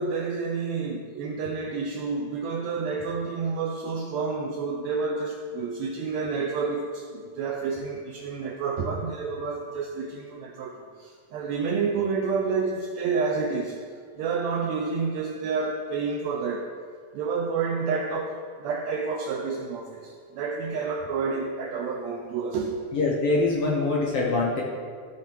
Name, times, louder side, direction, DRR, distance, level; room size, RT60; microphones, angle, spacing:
voice 1, 0.0-13.8 14.2-16.7 17.1-23.0, right 4 dB, 85° right, 3 dB, 1.5 m, -29 dB
voice 2, 22.9-24.6, left 3 dB, 70° left, -3 dB, 1.5 m, -24 dB
13.5 x 6.5 x 3.4 m, 2.1 s
omnidirectional pair, 3.7 m